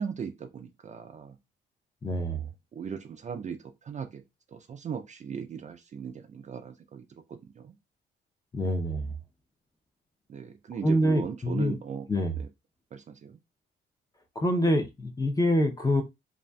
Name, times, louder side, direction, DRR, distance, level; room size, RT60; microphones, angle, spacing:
voice 1, 0.0-1.4 2.2-2.4 2.7-4.2 4.5-7.0 7.3-7.7 10.3-12.1 12.4-12.5 12.9-13.4, right 7 dB, 35° right, 0.4 m, -38 dB
voice 2, 2.0-2.4 8.5-9.1 10.8-11.8 12.1-12.3 14.4-16.0, equal, 20° left, 0.6 m, -26 dB
2.4 x 2.4 x 2.2 m
cardioid pair, 90°, 20 cm